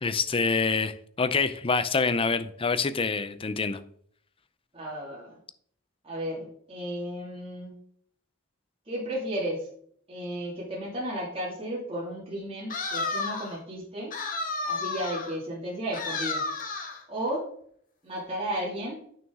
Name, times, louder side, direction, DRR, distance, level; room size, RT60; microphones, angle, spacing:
voice 1, 0.0-3.8, left 4 dB, 25° left, 12 dB, 0.5 m, -26 dB
voice 2, 4.7-5.4 6.0-7.7 8.9-9.7 10.1-14.1 14.7-16.4 17.1-17.5 18.0-19.0, right 1 dB, 30° right, -5 dB, 2.3 m, -34 dB
sound 1, 12.7-13.6 14.1-15.3 15.9-17.0, left 3 dB, 40° left, 1.5 m, -32 dB
8.8 x 6.2 x 3.6 m, 0.64 s
head